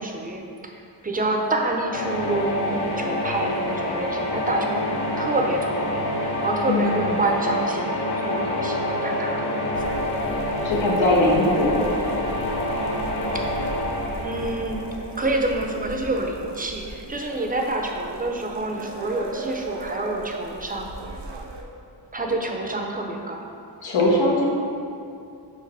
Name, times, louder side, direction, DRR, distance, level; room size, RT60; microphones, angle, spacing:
voice 1, 0.0-7.9 8.2-9.5 9.8-10.0 13.3-13.5 14.2-14.8 15.2-20.9 22.1-23.5, right 2 dB, 20° right, 2 dB, 0.5 m, -28 dB
sound 1, 1.9-15.8, left 1 dB, 60° left, 1.0 m, -27 dB
sound 2, 9.7-21.6, right 2 dB, 65° right, 0.7 m, -38 dB
voice 2, 10.6-12.2 23.8-24.5, left 1 dB, 85° left, -3 dB, 1.0 m, -21 dB
4.9 x 3.9 x 5.4 m, 2.5 s
wide cardioid pair, 125°, 44 cm